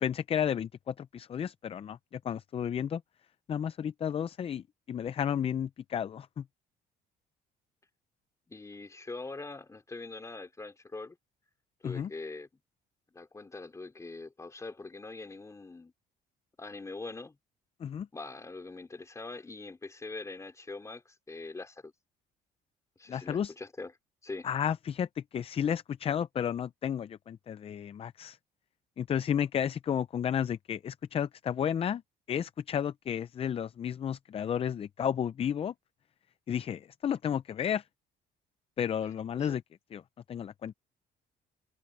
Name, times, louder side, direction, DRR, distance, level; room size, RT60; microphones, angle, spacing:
voice 1, 0.0-3.0 3.5-6.4 11.8-12.1 17.8-18.1 23.1-23.5 24.4-28.4 29.0-32.0 32.3-35.7 36.5-37.8 38.8-39.6 39.9-40.0 40.3-40.7, left 8 dB, 35° left, 0.5 m, -32 dB
voice 2, 8.5-11.2 11.8-12.5 13.1-15.9 16.6-17.4 18.1-21.9 23.0-23.9 24.2-24.5 39.4-39.5, left 3 dB, 15° left, 2.9 m, -43 dB
cardioid pair, 110°, 17 cm